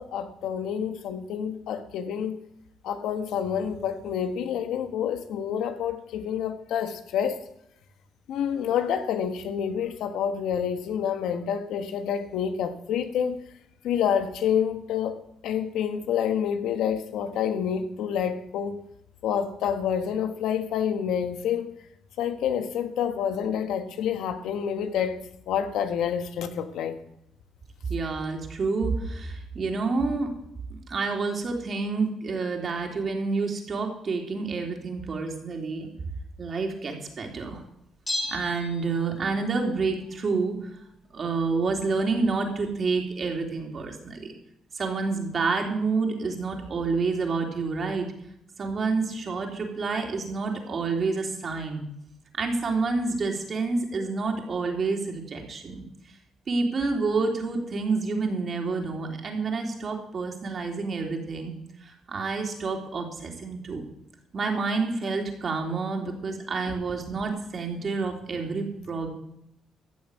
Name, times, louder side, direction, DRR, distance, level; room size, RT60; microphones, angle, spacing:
voice 1, 0.0-2.4 2.8-7.4 8.3-13.4 13.8-18.8 19.2-21.7 22.2-25.2 25.5-27.0, left 8 dB, 85° left, 8 dB, 1.4 m, -28 dB
voice 2, 27.9-30.3 30.7-35.9 36.4-37.6 38.3-40.6 41.1-44.3 44.7-48.1 48.6-51.8 52.3-55.8 56.5-61.5 61.8-63.8 64.3-69.1, right 4 dB, 45° right, 2 dB, 3.3 m, -28 dB
Bell, 38.1-39.5 39.7-39.8, left 1 dB, 15° left, 3.5 m, -34 dB
15.0 x 7.2 x 8.0 m, 0.78 s
cardioid pair, 90°, 0 cm